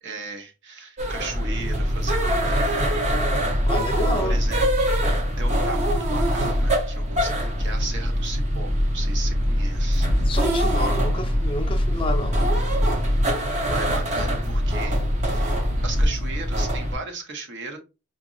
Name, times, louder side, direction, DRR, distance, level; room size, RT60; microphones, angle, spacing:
voice 1, 0.0-3.1 4.2-10.1 13.3-17.8, right 3 dB, 55° right, 0.9 m, -37 dB
sound 1, 1.0-17.0, equal, 30° right, 0.7 m, -23 dB
voice 2, 3.6-4.4 10.1-12.4, left 1 dB, 25° left, 0.5 m, -29 dB
sound 2, 9.9-13.4 13.7-16.4, left 2 dB, 90° right, 1.5 m, -39 dB
4.9 x 2.5 x 2.4 m
head